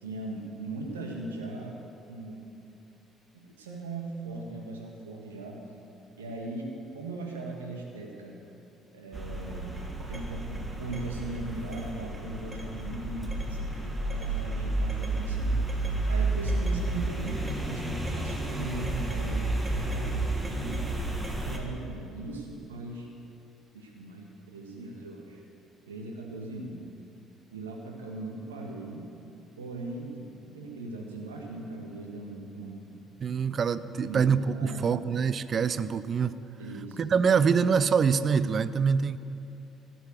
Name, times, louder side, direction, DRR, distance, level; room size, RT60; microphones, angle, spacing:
voice 1, 0.0-1.7 2.1-2.4 3.3-5.6 6.2-8.4 8.9-9.7 10.1-15.5 16.1-20.8 21.4-23.1 23.7-25.4 25.9-26.8 27.5-29.1 29.6-32.9 34.0-34.2 34.5-35.0 36.6-37.0, right 2 dB, 80° right, 0 dB, 1.7 m, -39 dB
sound 1, 9.1-21.6, right 2 dB, 15° right, 2.0 m, -31 dB
voice 2, 33.2-36.4 37.0-39.2, right 6 dB, 45° right, 15 dB, 0.5 m, -25 dB
16.5 x 7.8 x 6.5 m, 2.7 s
figure-of-eight pair, 50°, 0 cm